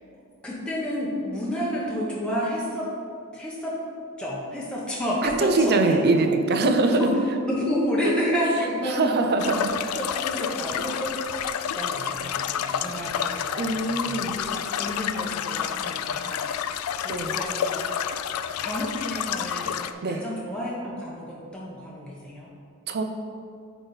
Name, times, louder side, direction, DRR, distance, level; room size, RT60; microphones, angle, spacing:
voice 1, 0.4-2.9 3.3-3.8 4.2-5.9 6.8-7.1 7.4-9.0 10.0-11.1 11.8-16.7 17.0-17.9 18.6-22.5, equal, 5° left, -6 dB, 0.9 m, -30 dB
voice 2, 5.2-7.1 8.8-10.0 13.6-14.4 17.1-17.4 20.0-20.2 22.9-23.0, right 2 dB, 50° right, 6 dB, 0.6 m, -23 dB
sound 1, 9.4-19.9, left 8 dB, 80° left, 0.3 m, -29 dB
9.2 x 4.0 x 3.9 m, 2.4 s
head